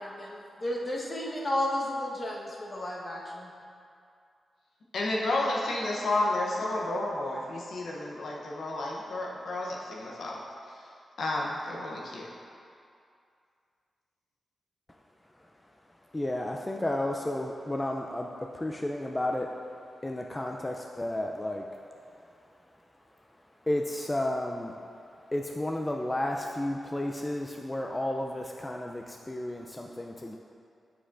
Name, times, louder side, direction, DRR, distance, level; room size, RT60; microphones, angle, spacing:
voice 1, 0.0-3.5, left 1 dB, 40° left, -3 dB, 1.2 m, -33 dB
voice 2, 4.9-10.9 11.2-12.3, left 2 dB, 75° left, -2 dB, 0.7 m, -31 dB
voice 3, 16.0-22.5 22.9-23.4 23.6-24.8 25.3-30.4, left 1 dB, 20° left, 1 dB, 0.4 m, -33 dB
7.0 x 6.7 x 2.5 m, 2.4 s
cardioid pair, 50°, 0 cm